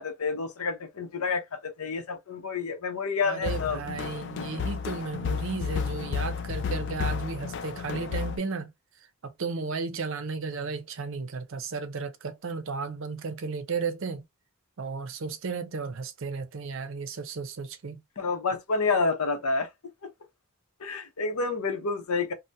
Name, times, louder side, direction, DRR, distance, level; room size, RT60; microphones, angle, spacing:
voice 1, 0.0-3.8 18.2-19.7 20.0-20.1 20.8-22.3, left 4 dB, 85° left, 0.7 m, -29 dB
voice 2, 3.2-8.7 9.2-14.2 14.8-18.0, right 4 dB, 65° right, 0.5 m, -34 dB
sound 1, 3.4-8.4, left 6 dB, 55° left, 0.3 m, -32 dB
2.7 x 2.1 x 3.2 m
head